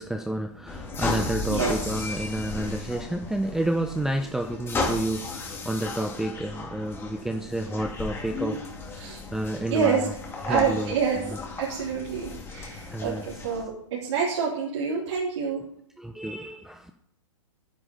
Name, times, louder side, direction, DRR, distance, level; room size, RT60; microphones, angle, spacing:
voice 1, 0.0-10.1 10.4-11.4 12.9-13.4 16.0-16.9, right 1 dB, 5° right, 5 dB, 0.6 m, -30 dB
sound 1, 0.7-13.6, left 3 dB, 15° left, 2.3 m, -34 dB
voice 2, 9.7-10.0 10.5-11.2 11.6-15.6, right 6 dB, 60° right, -6 dB, 3.8 m, -27 dB
9.9 x 9.7 x 5.5 m, 0.68 s
hypercardioid pair, 130°, 16 cm